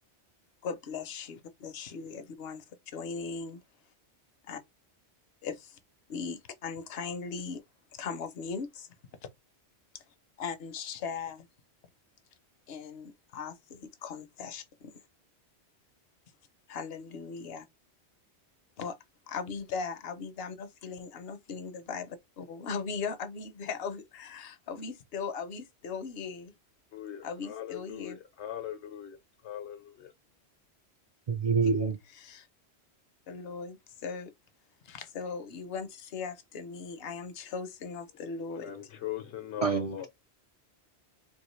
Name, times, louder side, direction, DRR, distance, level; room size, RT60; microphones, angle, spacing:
voice 1, 0.6-2.6 2.9-3.6 4.4-4.6 5.4-5.8 6.1-7.6 7.9-8.9 9.9-10.0 10.4-11.5 12.7-15.0 16.7-17.7 18.8-19.0 19.3-26.5 27.2-28.2 31.6-31.8 32.1-32.5 33.3-34.3 34.8-38.8, left 5 dB, 65° left, 0.9 m, -38 dB
voice 2, 26.9-29.2 29.4-30.1 38.5-40.1, left 10 dB, 85° left, 1.1 m, -40 dB
voice 3, 31.3-32.0 39.6-40.1, right 5 dB, 55° right, 0.4 m, -26 dB
3.6 x 2.4 x 3.1 m
omnidirectional pair, 1.1 m